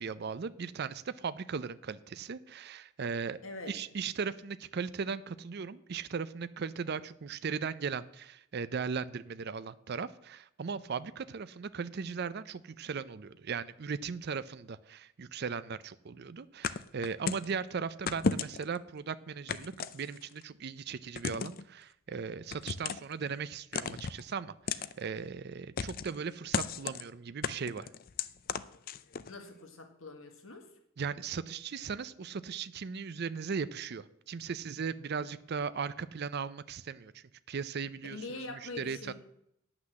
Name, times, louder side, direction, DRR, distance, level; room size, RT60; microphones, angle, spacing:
voice 1, 0.0-3.4 3.7-27.9 31.0-39.1, right 5 dB, 50° right, 14 dB, 0.5 m, -38 dB
voice 2, 3.4-3.7 29.3-30.7 38.0-39.1, left 3 dB, 75° left, 5 dB, 1.7 m, -43 dB
sound 1, 16.6-17.5 18.1-18.8 19.5-20.4 21.2-21.6 22.5-23.1 23.7-24.2 24.7-24.9 25.8-26.2 26.5-27.0 27.4-29.3, left 5 dB, 45° left, 0.4 m, -34 dB
9.8 x 6.0 x 7.5 m, 0.74 s
head